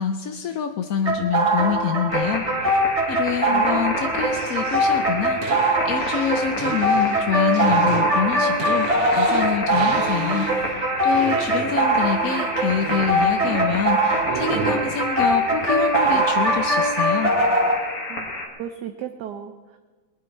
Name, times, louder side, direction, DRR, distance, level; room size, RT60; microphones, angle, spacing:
voice 1, 0.0-2.8 3.1-8.9 9.2-17.3, left 8 dB, 70° left, 7 dB, 0.8 m, -26 dB
sound 1, 1.0-17.8, right 1 dB, 35° right, 2.3 m, -22 dB
sound 2, 2.1-18.5, left 2 dB, 45° left, 2.5 m, -31 dB
voice 2, 3.5-3.9 18.1-18.3 18.6-19.8, right 9 dB, 65° right, 7 dB, 1.2 m, -35 dB
sound 3, 4.3-10.8 11.1-12.0 12.3-13.8 14.2-15.0 16.1-16.3, right 7 dB, 85° right, 1.6 m, -32 dB
20.0 x 11.0 x 4.5 m, 1.3 s
omnidirectional pair, 2.2 m